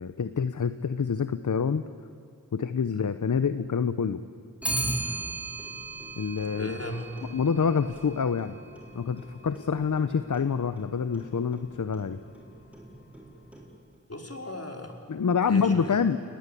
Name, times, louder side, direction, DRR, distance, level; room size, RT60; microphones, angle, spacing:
voice 1, 0.0-1.8 2.5-4.2 6.2-6.7 7.3-8.6 8.9-12.2 15.1-16.2, left 6 dB, 60° left, 12 dB, 0.9 m, -27 dB
Clock, 4.6-14.0, right 2 dB, 5° right, 4.5 m, -38 dB
voice 2, 5.0-5.5 6.6-7.1 14.1-15.0 15.5-16.0, left 1 dB, 45° left, 3 dB, 3.8 m, -38 dB
29.5 x 20.5 x 8.5 m, 2.3 s
wide cardioid pair, 55°, 34 cm